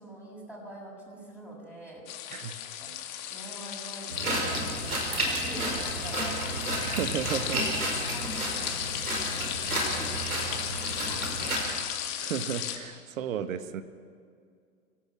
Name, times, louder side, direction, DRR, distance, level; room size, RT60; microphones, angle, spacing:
voice 1, 0.0-2.1 2.8-2.9 3.3-4.5 5.0-6.6 6.9-7.0 7.3-7.5 8.1-10.2 11.1-12.1, right 1 dB, 5° right, -4 dB, 7.4 m, -45 dB
sound 1, 2.1-12.8, left 10 dB, 40° left, 2.1 m, -35 dB
sound 2, 4.1-11.6, right 1 dB, 85° right, 5.2 m, -32 dB
voice 2, 6.9-7.6 12.2-13.8, right 8 dB, 65° right, 11 dB, 1.4 m, -33 dB
25.5 x 17.0 x 6.2 m, 2.2 s
figure-of-eight pair, 95°, 43 cm